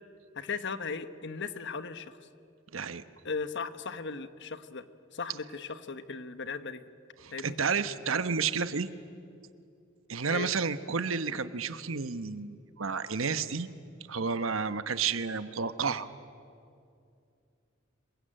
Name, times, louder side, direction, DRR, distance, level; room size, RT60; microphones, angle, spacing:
voice 1, 0.3-2.2 3.2-4.8 5.1-6.8 7.3-7.6 10.3-10.5, left 5 dB, 60° left, 11 dB, 1.3 m, -37 dB
voice 2, 2.7-3.0 7.2-8.9 10.1-13.7 14.1-16.1, right 5 dB, 80° right, 12 dB, 1.1 m, -31 dB
27.0 x 23.0 x 9.0 m, 2.5 s
head